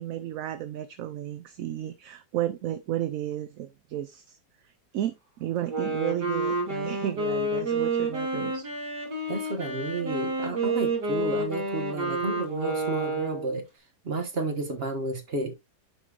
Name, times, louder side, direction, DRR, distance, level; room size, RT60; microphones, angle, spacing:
voice 1, 0.0-4.4 4.9-8.6, right 12 dB, 65° right, 0.9 m, -33 dB
Wind instrument woodwind instrument, 5.6-13.5, right 2 dB, 80° right, 3.1 m, -29 dB
voice 2, 9.3-13.6 14.0-15.5, right 2 dB, 40° right, 1.5 m, -31 dB
10.5 x 4.4 x 2.5 m
omnidirectional pair, 1.7 m